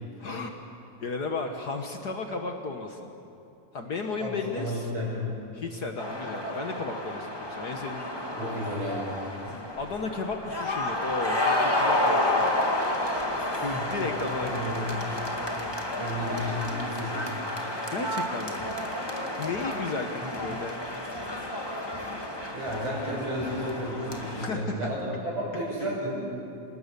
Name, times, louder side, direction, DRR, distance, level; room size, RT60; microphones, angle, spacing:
voice 1, 0.2-0.6 1.0-3.1 3.7-4.9 5.5-8.8 9.7-12.5 13.3-15.2 17.9-18.6 19.1-20.7 23.1-23.2 24.3-24.9 25.8-25.9, left 3 dB, 55° left, 4 dB, 1.1 m, -34 dB
voice 2, 4.2-5.2 8.4-9.1 13.6-13.9 14.4-14.9 16.0-17.3 20.2-20.3 22.4-26.1, equal, 55° right, -9 dB, 6.5 m, -33 dB
sound 1, 6.0-24.5, left 1 dB, 10° left, 1.3 m, -30 dB
27.5 x 19.5 x 6.9 m, 2.7 s
omnidirectional pair, 3.5 m